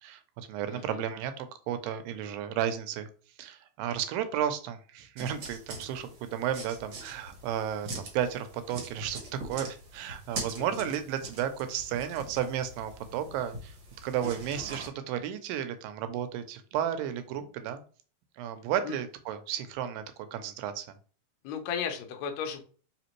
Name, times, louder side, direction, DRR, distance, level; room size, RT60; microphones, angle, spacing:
voice 1, 0.0-3.1 3.4-13.7 14.0-17.8 18.4-20.0 20.3-21.0, right 9 dB, 85° right, 9 dB, 2.3 m, -33 dB
voice 2, 0.7-1.0 10.6-10.9 18.8-19.0 21.4-22.6, left 7 dB, 75° left, 3 dB, 1.6 m, -35 dB
sound 1, 5.2-14.9, right 2 dB, 65° right, 1.2 m, -43 dB
5.0 x 3.0 x 3.0 m, 0.40 s
omnidirectional pair, 4.0 m